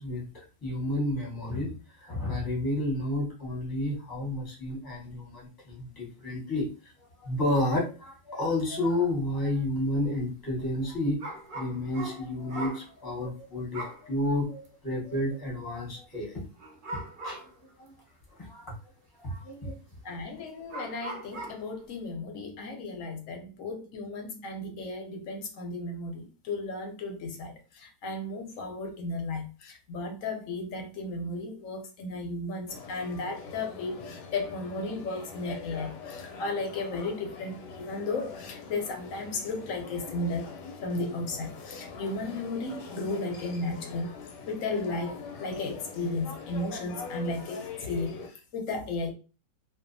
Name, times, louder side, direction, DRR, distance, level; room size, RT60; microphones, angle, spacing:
voice 1, 0.0-6.9 7.2-11.2 11.5-16.4 17.2-17.4 17.8-17.9 18.4-18.7 19.2-19.8, left 1 dB, 20° left, 0.7 m, -31 dB
sound 1, 11.2-12.9 13.7-14.1 14.6-14.7 16.6-17.6 18.2-18.3 20.0-20.1 20.7-21.7, right 2 dB, 75° right, 0.4 m, -39 dB
voice 2, 20.0-40.5 40.8-44.1 44.5-49.1, left 2 dB, 65° left, 0.8 m, -34 dB
sound 2, 32.7-48.3, left 4 dB, 80° left, 1.1 m, -43 dB
2.6 x 2.3 x 2.5 m
omnidirectional pair, 1.8 m